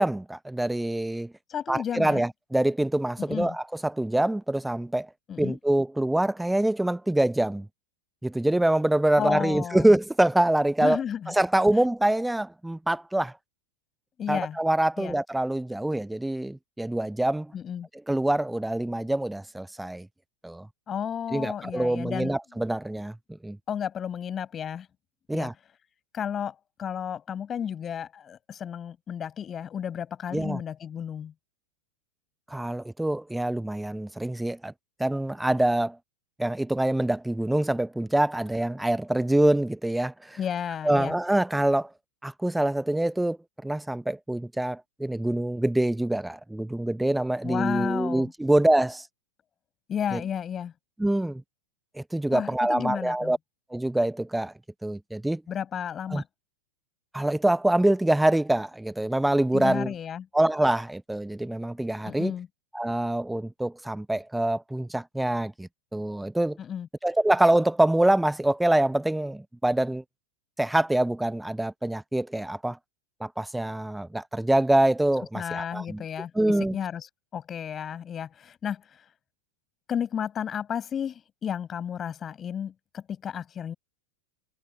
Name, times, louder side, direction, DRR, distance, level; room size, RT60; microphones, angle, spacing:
voice 1, 0.0-1.3 1.7-5.1 5.4-7.7 8.2-11.0 11.3-13.3 14.3-17.5 18.1-20.1 20.4-20.7 21.3-23.2 23.4-23.6 25.3-25.5 30.3-30.6 32.5-34.7 35.0-36.0 36.4-40.4 40.8-41.9 42.2-43.4 43.6-49.1 50.1-50.2 51.0-51.4 51.9-53.4 53.7-54.5 54.8-55.4 56.1-56.2 57.1-59.9 60.3-62.3 62.7-66.6 67.0-70.0 70.6-72.8 73.2-76.0 76.3-76.8, right 1 dB, 5° right, 0.7 m, -25 dB
voice 2, 1.5-2.2 3.2-3.6 5.3-5.6 9.2-9.9 10.8-11.3 14.2-14.6 15.0-15.2 17.5-17.9 20.9-22.3 23.7-24.9 25.3-25.5 26.1-31.3 40.4-41.2 47.4-48.3 49.9-50.7 52.3-53.3 55.5-56.2 59.5-60.3 62.0-62.5 66.6-66.9 75.3-76.3 76.7-77.1 77.3-79.0 79.9-83.7, left 8 dB, 25° left, 6.9 m, -32 dB
figure-of-eight pair, 90°, 0 cm